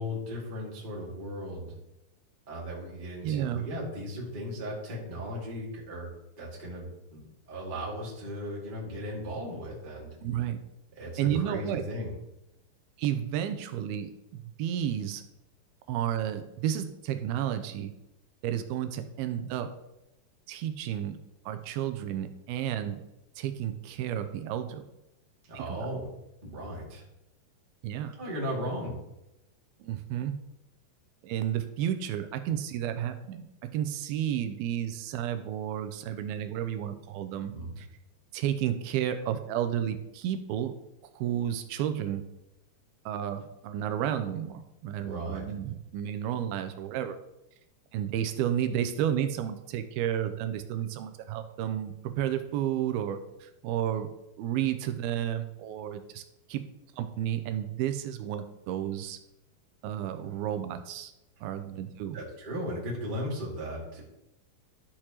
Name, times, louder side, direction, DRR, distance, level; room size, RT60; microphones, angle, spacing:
voice 1, 0.0-1.7 2.5-7.2 7.5-10.1 10.9-12.1 25.5-26.0 26.4-27.0 28.2-28.9 37.4-37.7 45.0-45.4 62.1-64.0, equal, 20° right, -4 dB, 1.4 m, -36 dB
voice 2, 3.2-3.7 10.2-10.6 11.2-11.8 13.0-15.2 15.9-17.9 18.4-19.7 20.5-21.2 21.5-23.0 23.4-24.8 25.5-25.9 27.8-28.2 29.8-30.4 31.2-37.9 38.3-40.7 41.1-42.2 43.1-47.2 47.9-56.2 56.5-56.7 56.9-59.2 59.8-61.1 61.4-62.2, right 10 dB, 80° right, 8 dB, 2.3 m, -32 dB
12.0 x 6.6 x 3.0 m, 0.90 s
omnidirectional pair, 4.7 m